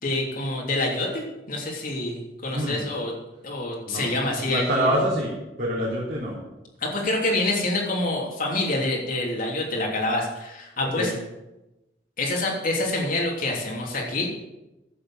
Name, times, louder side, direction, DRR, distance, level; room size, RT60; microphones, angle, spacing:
voice 1, 0.0-3.1 3.4-5.0 6.8-11.1 12.2-14.3, left 2 dB, 50° left, -2 dB, 3.2 m, -27 dB
voice 2, 2.5-2.8 3.9-4.1 4.4-5.3 5.6-6.4 10.8-11.1, equal, 50° right, -6 dB, 3.4 m, -26 dB
11.5 x 8.6 x 7.5 m, 0.98 s
head